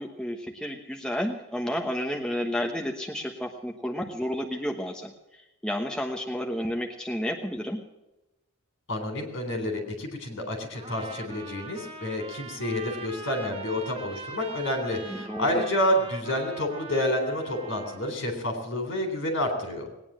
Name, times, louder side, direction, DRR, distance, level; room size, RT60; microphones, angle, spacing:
voice 1, 0.0-7.8 15.0-15.7, equal, 5° left, 1 dB, 1.1 m, -31 dB
voice 2, 8.9-19.9, left 1 dB, 60° left, 5 dB, 3.7 m, -29 dB
Trumpet, 10.7-18.1, right 3 dB, 25° right, 1.4 m, -42 dB
19.5 x 9.6 x 7.5 m, 0.96 s
head